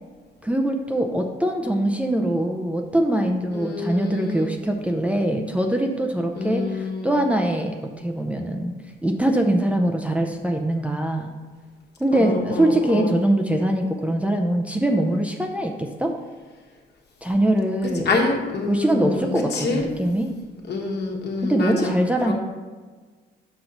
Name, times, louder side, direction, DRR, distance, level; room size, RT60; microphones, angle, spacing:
voice 1, 0.4-8.7 9.0-11.4 12.0-16.1 17.2-18.1 18.7-20.3 21.4-22.3, right 1 dB, 5° right, 2 dB, 0.6 m, -23 dB
voice 2, 3.5-4.5 6.4-7.1 12.1-13.1 18.0-19.8 20.7-21.9 22.2-22.3, left 3 dB, 55° left, 0 dB, 1.4 m, -26 dB
6.1 x 5.6 x 3.8 m, 1.4 s
cardioid pair, 90°, 20 cm